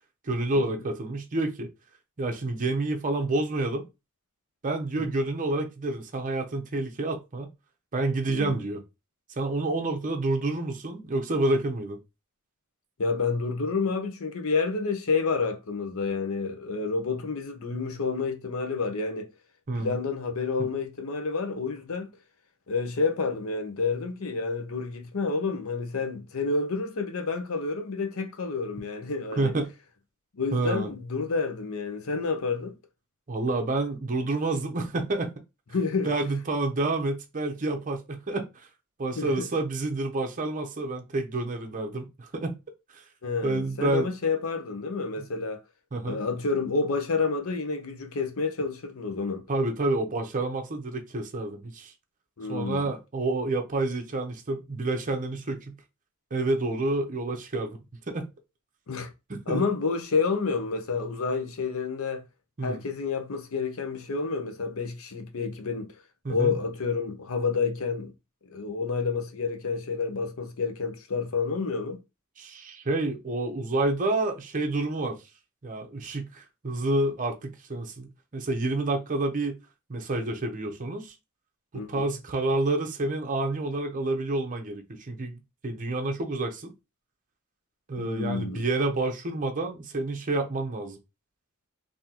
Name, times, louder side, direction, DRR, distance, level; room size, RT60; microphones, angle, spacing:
voice 1, 0.2-1.7 2.2-3.8 4.6-7.5 7.9-8.8 9.4-12.0 19.7-20.0 20.6-20.7 29.4-29.7 30.5-30.9 33.3-35.3 36.0-38.7 39.0-42.5 42.9-43.0 43.4-44.1 45.2-45.3 45.9-46.2 49.5-51.9 52.5-55.8 56.3-57.8 58.1-58.3 59.3-59.6 62.6-62.8 66.2-66.5 72.4-75.2 75.6-79.6 79.9-81.1 81.7-86.7 87.9-91.0, right 2 dB, 40° right, 0.6 m, -29 dB
voice 2, 13.0-19.3 19.8-22.1 22.7-29.5 30.3-32.8 35.7-36.1 39.2-39.5 43.2-45.6 46.0-49.4 52.4-52.9 58.9-59.1 59.5-62.2 62.6-65.9 66.3-68.1 68.5-72.0 81.7-82.1 88.0-88.7, left 4 dB, 70° left, 0.7 m, -29 dB
3.7 x 2.7 x 2.8 m
head